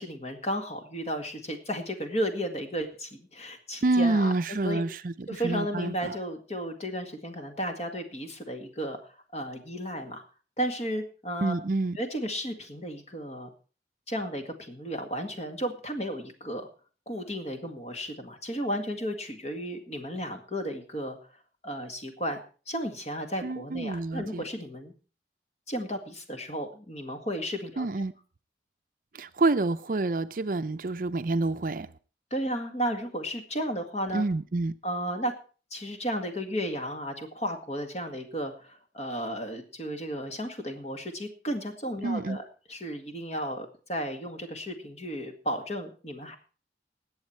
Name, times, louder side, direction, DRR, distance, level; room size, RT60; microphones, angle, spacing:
voice 1, 0.0-4.3 4.6-4.8 5.3-10.2 10.6-11.5 12.0-13.5 14.1-16.7 17.1-21.2 21.6-22.4 22.7-24.9 25.7-27.9 32.3-34.2 34.8-35.3 35.7-42.4 42.7-46.4, equal, 35° left, 1.9 m, -33 dB
voice 2, 3.8-6.1 11.4-12.0 23.4-24.4 27.8-28.1 29.1-31.9 34.1-34.7 42.0-42.4, right 2 dB, 50° right, 0.5 m, -28 dB
19.5 x 8.1 x 4.5 m
head